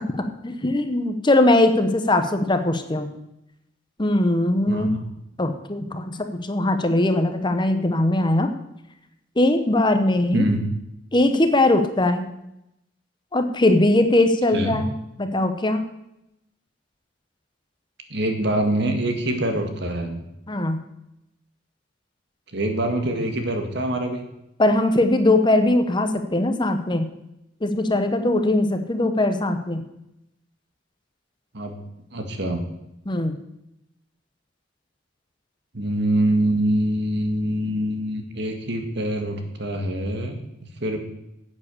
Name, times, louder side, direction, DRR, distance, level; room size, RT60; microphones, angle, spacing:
voice 1, 0.4-3.1 4.0-4.9 5.4-8.5 9.4-10.5 11.1-12.3 13.3-15.8 20.5-20.8 24.6-27.1 27.6-29.8 33.1-33.4, left 1 dB, 25° left, 8 dB, 0.9 m, -20 dB
voice 2, 4.7-5.0 10.3-10.6 14.5-14.8 18.1-20.2 22.5-24.2 31.5-31.8 32.1-32.6 35.7-40.4 40.8-41.0, right 1 dB, 60° right, 5 dB, 1.9 m, -24 dB
10.5 x 8.6 x 6.9 m, 0.85 s
head